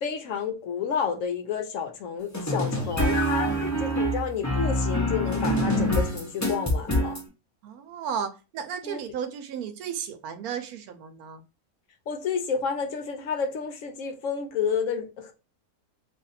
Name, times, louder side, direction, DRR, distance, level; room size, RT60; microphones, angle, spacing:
voice 1, 0.0-7.2 8.8-9.0 12.1-15.3, left 6 dB, 70° left, 0.9 m, -30 dB
sound 1, 2.3-7.2, equal, 20° left, 0.5 m, -25 dB
voice 2, 7.6-11.4, right 8 dB, 80° right, 1.1 m, -34 dB
2.7 x 2.5 x 4.0 m
omnidirectional pair, 1.5 m